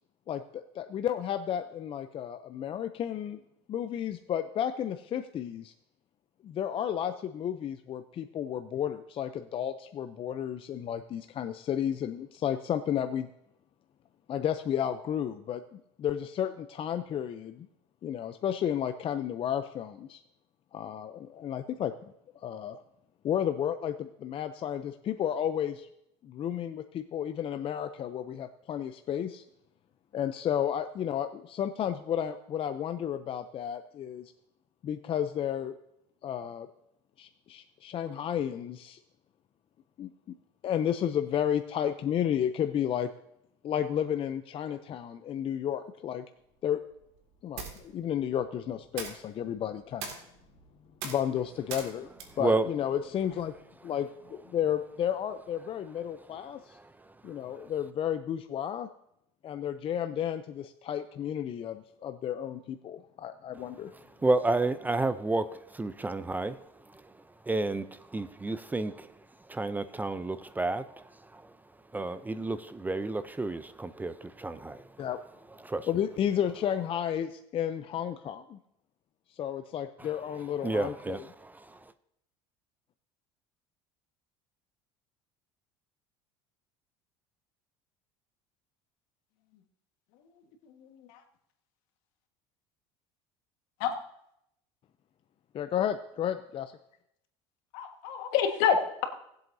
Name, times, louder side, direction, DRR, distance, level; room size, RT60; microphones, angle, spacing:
voice 1, 0.3-3.4 3.7-5.7 6.4-13.3 14.3-17.7 18.0-20.2 20.7-21.9 22.4-22.8 23.2-25.9 26.2-29.4 30.1-34.3 34.8-35.7 36.2-36.7 37.2-39.0 40.0-40.4 40.6-43.1 43.6-46.2 46.6-46.8 47.4-50.1 51.0-52.1 52.4-53.5 53.8-56.8 57.2-58.9 59.4-63.9 75.0-75.2 75.9-78.6 79.3-81.2 95.5-96.7, left 9 dB, 40° left, 9 dB, 0.5 m, -32 dB
sound 1, 46.4-53.6, right 5 dB, 85° right, 2.2 m, -45 dB
voice 2, 52.3-52.7 56.2-57.7 63.6-75.1 75.5-75.9 80.0-81.9, right 2 dB, 10° right, 13 dB, 0.5 m, -32 dB
voice 3, 90.8-91.2 93.8-93.9 97.7-99.1, left 7 dB, 70° left, 4 dB, 1.5 m, -28 dB
19.0 x 7.8 x 2.7 m, 0.78 s
supercardioid pair, 95°, 14 cm